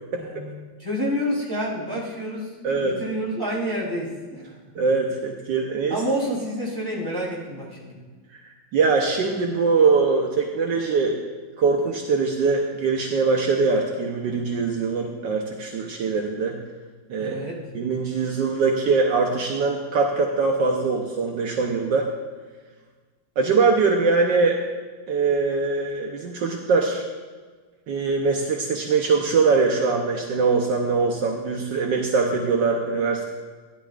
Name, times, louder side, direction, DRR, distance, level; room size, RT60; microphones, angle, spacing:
voice 1, 0.2-0.5 0.8-4.5 5.9-8.0 17.2-17.7, equal, 10° right, -6 dB, 3.1 m, -28 dB
voice 2, 2.6-3.0 4.7-6.0 8.3-8.4 8.7-11.2 11.6-16.6 17.1-17.4 17.7-22.1 23.4-24.6 25.1-27.0 27.9-33.2, right 4 dB, 70° right, 1 dB, 1.5 m, -22 dB
15.5 x 11.0 x 2.4 m, 1.4 s
omnidirectional pair, 2.1 m